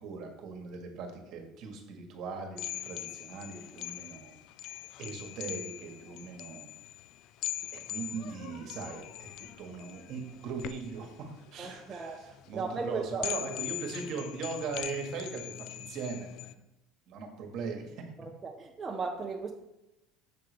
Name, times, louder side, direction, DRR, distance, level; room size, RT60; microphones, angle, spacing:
voice 1, 0.0-4.4 4.6-6.7 7.7-16.6 17.1-17.9, right 5 dB, 60° right, 3 dB, 1.4 m, -40 dB
sound 1, 2.6-16.5, left 13 dB, 65° left, 0.3 m, -42 dB
voice 2, 11.6-12.2 12.5-13.3 18.4-19.5, right 4 dB, 25° right, 1 dB, 0.7 m, -36 dB
6.9 x 3.8 x 5.0 m, 0.93 s
supercardioid pair, 95°, 0 cm